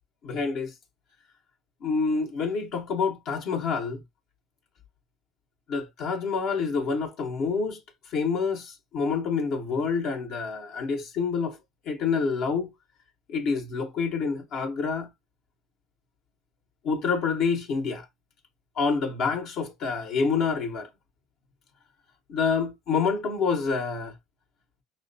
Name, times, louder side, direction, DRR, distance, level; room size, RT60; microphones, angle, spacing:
voice 1, 0.2-0.7 1.8-4.0 5.7-7.8 8.1-11.6 11.9-12.7 13.3-15.1 16.8-18.1 18.8-20.9 22.3-24.1, left 5 dB, 65° left, 0.9 m, -27 dB
5.8 x 2.2 x 2.6 m
supercardioid pair, 90°, 0 cm